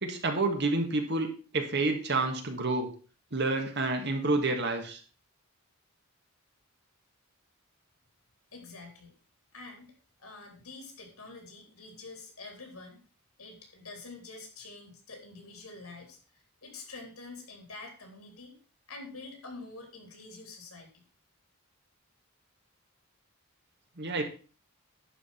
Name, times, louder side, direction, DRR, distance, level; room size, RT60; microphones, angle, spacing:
voice 1, 0.0-1.3 1.5-2.9 3.3-5.0 24.0-24.2, right 2 dB, 50° right, 5 dB, 1.7 m, -29 dB
voice 2, 8.5-9.1 9.5-13.0 13.4-18.6 18.9-21.0, left 3 dB, 80° left, 3 dB, 3.6 m, -47 dB
11.0 x 5.0 x 5.7 m, 0.38 s
head